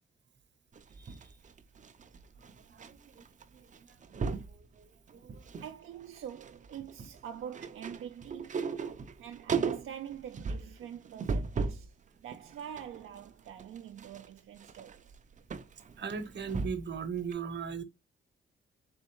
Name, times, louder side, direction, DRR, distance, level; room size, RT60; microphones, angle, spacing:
sound 1, 0.7-2.9 3.2-3.4 3.7-4.5 5.1-5.7 6.0-11.9 12.3-17.0 17.3-17.4, right 5 dB, 40° right, 0.5 m, -37 dB
voice 1, 1.0-1.3 2.4-3.3 3.5-4.0 4.3-5.5 16.0-17.8, right 6 dB, 60° right, 0.9 m, -40 dB
voice 2, 5.6-8.6 9.2-15.2, right 9 dB, 85° right, 0.5 m, -45 dB
4.2 x 3.5 x 3.0 m
cardioid pair, 110°, 21 cm